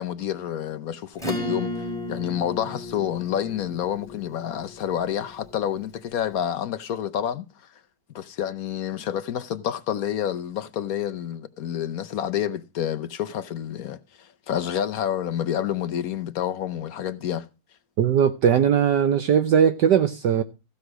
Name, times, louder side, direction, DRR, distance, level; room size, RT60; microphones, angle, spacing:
voice 1, 0.0-7.5 8.1-17.5, left 10 dB, 60° left, 1.0 m, -29 dB
Acoustic guitar / Strum, 1.2-6.1, left 1 dB, ahead, 3.3 m, -34 dB
voice 2, 18.0-20.4, right 8 dB, 65° right, 1.3 m, -19 dB
15.5 x 5.8 x 6.2 m
omnidirectional pair, 2.2 m